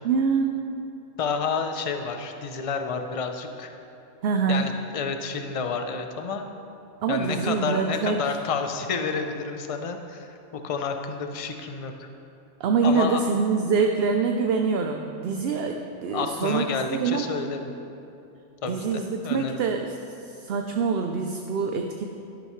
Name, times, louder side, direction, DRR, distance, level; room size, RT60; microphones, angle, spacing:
voice 1, 0.0-0.7 4.2-4.7 7.0-8.4 12.6-17.4 18.6-19.9 20.2-22.1, right 5 dB, 65° right, 4 dB, 0.8 m, -25 dB
voice 2, 1.2-3.7 4.5-6.5 7.1-12.1 12.8-13.2 16.1-17.6 18.6-19.6, left 5 dB, 35° left, 6 dB, 0.6 m, -30 dB
12.5 x 11.0 x 3.1 m, 2.8 s
omnidirectional pair, 1.2 m